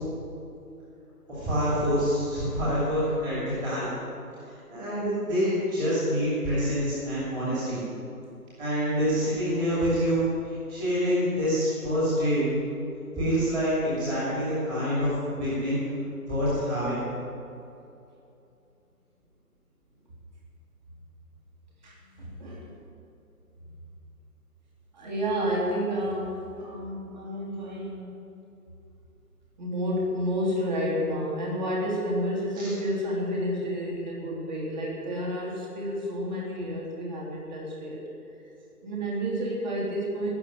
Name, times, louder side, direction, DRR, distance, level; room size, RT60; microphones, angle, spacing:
voice 1, 1.3-3.9 4.7-7.8 8.6-10.2 10.7-12.5 13.2-15.1 15.4-15.8 16.3-17.0 32.5-32.7, equal, 10° right, -10 dB, 2.7 m, -26 dB
voice 2, 21.8-22.7 23.6-23.7 24.9-28.1 29.6-38.0 38.8-40.3, equal, 30° right, -4 dB, 3.3 m, -30 dB
18.5 x 6.8 x 9.5 m, 2.7 s
figure-of-eight pair, 160°, 47 cm